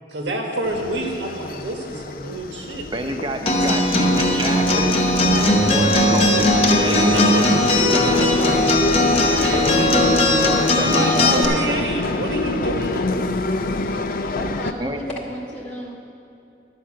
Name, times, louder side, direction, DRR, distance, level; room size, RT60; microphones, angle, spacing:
voice 1, 0.1-2.9 6.8-9.7 10.7-13.1, right 1 dB, 80° right, 2 dB, 1.3 m, -27 dB
sound 1, 0.6-14.7, left 2 dB, 55° left, 0.4 m, -26 dB
voice 2, 2.9-5.2 5.7-7.3 9.5-11.7 14.8-15.0, right 1 dB, 25° right, 5 dB, 0.7 m, -28 dB
Acoustic guitar, 3.5-11.4, left 1 dB, 35° left, 0.9 m, -18 dB
voice 3, 14.3-16.0, equal, 5° left, -6 dB, 0.9 m, -33 dB
11.5 x 5.5 x 7.3 m, 2.7 s
head